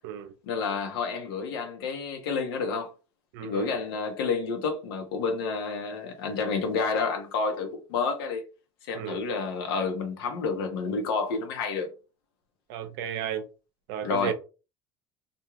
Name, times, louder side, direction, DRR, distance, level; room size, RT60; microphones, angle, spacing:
voice 1, 0.4-2.9 3.4-8.4 8.9-11.9 14.0-14.3, left 4 dB, 85° left, 0.8 m, -29 dB
voice 2, 3.3-3.7 8.9-9.2 12.7-13.4 13.9-14.3, right 9 dB, 80° right, 0.5 m, -33 dB
2.4 x 2.3 x 3.0 m
supercardioid pair, 90°, 12 cm